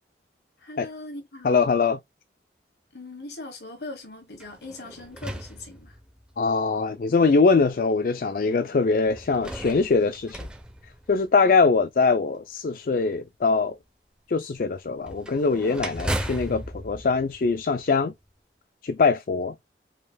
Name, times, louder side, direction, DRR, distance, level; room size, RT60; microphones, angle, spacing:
voice 1, 0.6-1.7 2.9-6.0, left 2 dB, 70° left, 1.3 m, -40 dB
voice 2, 1.4-2.0 6.4-10.5 11.1-13.8 14.3-18.1 18.8-19.6, left 4 dB, 50° left, 0.4 m, -22 dB
sound 1, 4.3-6.3 7.1-7.2 9.1-11.6 15.0-18.1, right 1 dB, 5° right, 0.7 m, -36 dB
5.1 x 4.4 x 2.2 m
head